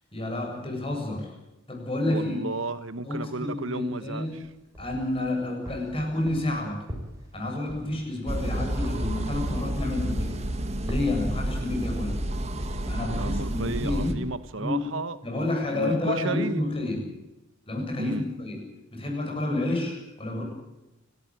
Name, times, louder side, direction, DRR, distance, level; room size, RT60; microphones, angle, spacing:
voice 1, 0.1-1.3 1.7-2.4 3.0-4.3 4.8-6.8 7.3-10.4 10.9-12.2 12.8-14.1 14.6-14.8 15.2-17.0 17.7-18.6 18.9-20.4, left 2 dB, 25° left, 7.5 m, -29 dB
voice 2, 2.1-4.5 13.1-16.6 16.9-17.2 18.0-18.3, right 3 dB, 75° right, 1.2 m, -33 dB
sound 1, 4.2-5.2 5.7-9.8 10.1-10.6 10.9-11.4, equal, 15° right, 5.8 m, -40 dB
sound 2, 8.3-14.1, right 1 dB, 35° right, 1.9 m, -30 dB
30.0 x 13.0 x 9.0 m
head